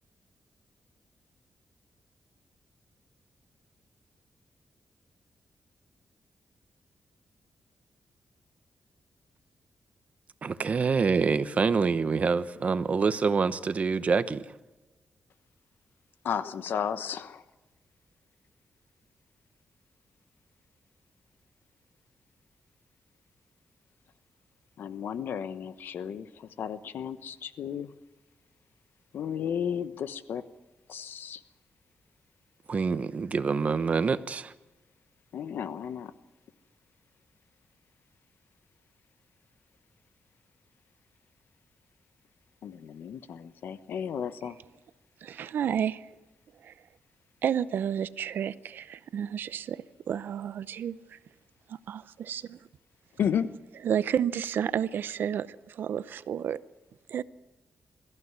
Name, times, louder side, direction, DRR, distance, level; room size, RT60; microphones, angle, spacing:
voice 1, 10.4-14.4 32.7-34.5, right 5 dB, 45° right, 1.0 m, -26 dB
voice 2, 16.2-17.4 24.8-27.9 29.1-30.4 30.9-31.4 35.3-36.1 42.6-44.6 53.2-53.5, left 8 dB, 90° left, 1.0 m, -33 dB
voice 3, 45.2-46.0 46.6-46.7 47.4-51.0 51.9-52.6 53.8-56.6 57.1-57.2, right 9 dB, 80° right, 0.7 m, -31 dB
22.0 x 14.5 x 9.7 m
wide cardioid pair, 115°, 3 cm